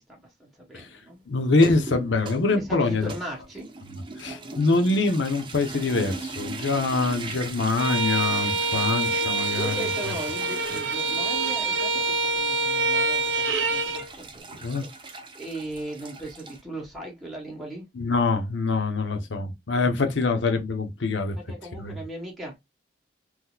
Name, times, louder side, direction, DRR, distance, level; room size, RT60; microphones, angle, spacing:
voice 1, 0.0-1.2 2.5-3.7 9.5-17.9 21.3-22.6, right 1 dB, ahead, 1.0 m, -38 dB
voice 2, 1.3-3.1 4.2-9.9 14.6-14.8 17.9-21.4 21.8-22.0, left 3 dB, 85° left, 0.8 m, -24 dB
sound 1, 1.5-16.6, right 4 dB, 25° right, 0.7 m, -39 dB
Bowed string instrument, 7.8-14.1, right 3 dB, 85° right, 0.7 m, -26 dB
3.7 x 3.0 x 2.2 m
head